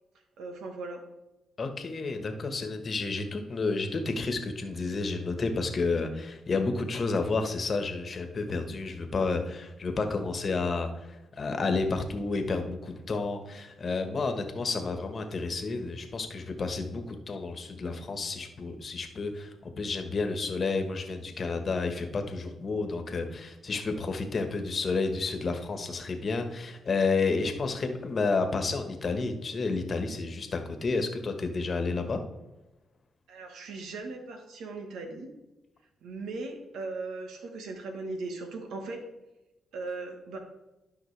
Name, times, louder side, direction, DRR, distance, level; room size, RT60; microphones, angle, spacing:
voice 1, 0.4-1.0 33.3-35.3 36.0-39.0 39.7-40.4, right 3 dB, 85° right, 5 dB, 1.4 m, -38 dB
voice 2, 1.6-32.2, left 3 dB, 45° left, 6 dB, 1.3 m, -31 dB
11.0 x 5.7 x 3.3 m, 1.0 s
cardioid pair, 80°, 0 cm